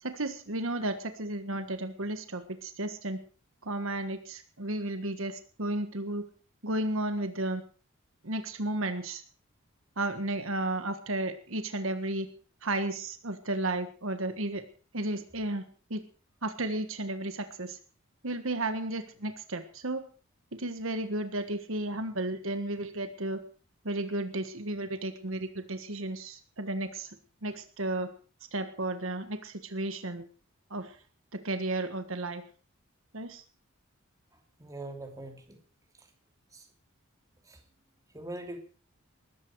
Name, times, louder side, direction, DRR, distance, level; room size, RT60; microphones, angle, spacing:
voice 1, 0.0-3.2 3.6-6.3 6.6-7.6 8.2-9.2 10.0-12.3 12.6-14.6 14.9-15.6 15.9-16.0 16.4-17.8 18.2-20.0 20.5-23.4 23.8-27.1 27.4-28.1 28.5-30.3 30.7-31.0 31.3-32.4 33.1-33.4, right 2 dB, 65° right, 9 dB, 1.5 m, -33 dB
voice 2, 34.6-35.6 36.0-36.1 36.5-36.7 37.4-37.6 38.1-38.6, right 2 dB, 15° right, 4 dB, 2.8 m, -42 dB
20.0 x 14.5 x 4.7 m, 0.40 s
head